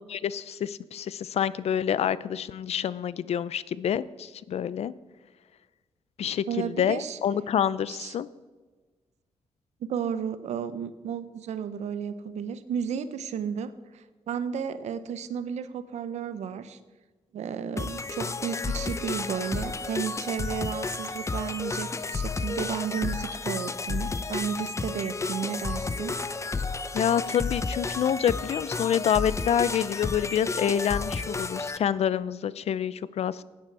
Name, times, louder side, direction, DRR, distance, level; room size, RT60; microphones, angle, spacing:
voice 1, 0.1-4.9 6.2-8.3 26.9-33.4, left 9 dB, 65° left, 18 dB, 0.5 m, -27 dB
voice 2, 6.5-7.2 7.9-8.2 9.8-16.8 17.3-26.2, right 7 dB, 80° right, 13 dB, 0.8 m, -33 dB
sound 1, 17.8-31.8, left 3 dB, 25° left, 0.6 m, -32 dB
16.5 x 9.5 x 4.7 m, 1.3 s
cardioid pair, 85°, 11 cm